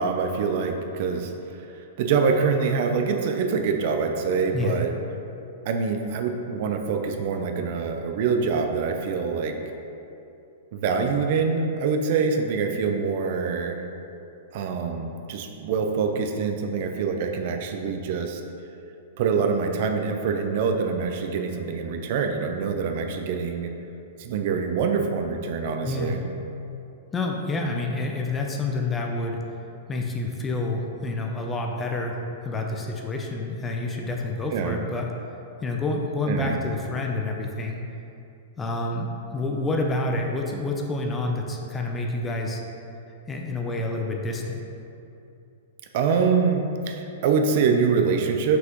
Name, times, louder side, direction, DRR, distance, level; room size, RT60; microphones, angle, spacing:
voice 1, 0.0-1.3 2.0-4.9 5.7-9.6 10.7-13.8 14.5-18.4 19.2-23.7 24.2-26.2 34.5-34.8 36.2-36.6 45.9-48.6, right 5 dB, 50° right, 5 dB, 0.5 m, -25 dB
voice 2, 25.8-26.2 27.1-29.4 29.9-35.1 35.6-37.8 38.6-42.6 43.3-44.6, left 2 dB, 15° left, 1 dB, 0.6 m, -28 dB
6.1 x 5.5 x 3.0 m, 2.7 s
hypercardioid pair, 150°, 0 cm